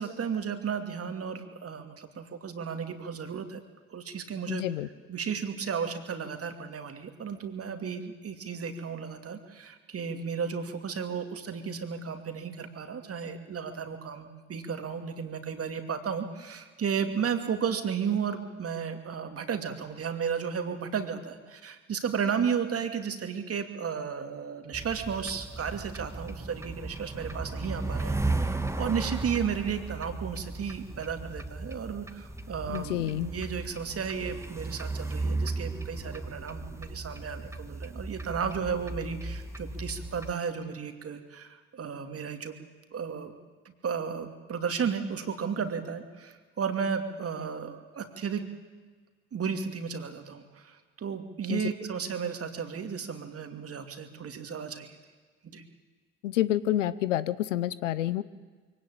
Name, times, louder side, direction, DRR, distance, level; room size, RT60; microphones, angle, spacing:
voice 1, 0.0-3.6 3.9-4.6 5.1-42.5 42.9-43.3 43.6-48.4 49.3-55.0 55.5-55.6, right 6 dB, 40° right, 7 dB, 2.6 m, -34 dB
voice 2, 4.5-4.9 32.7-33.3 51.5-51.6 56.2-58.2, left 13 dB, 85° left, 16 dB, 0.8 m, -28 dB
sound 1, 24.7-40.3, right 2 dB, 10° right, 1.6 m, -35 dB
23.0 x 17.5 x 8.9 m, 1.5 s
hypercardioid pair, 60°, 36 cm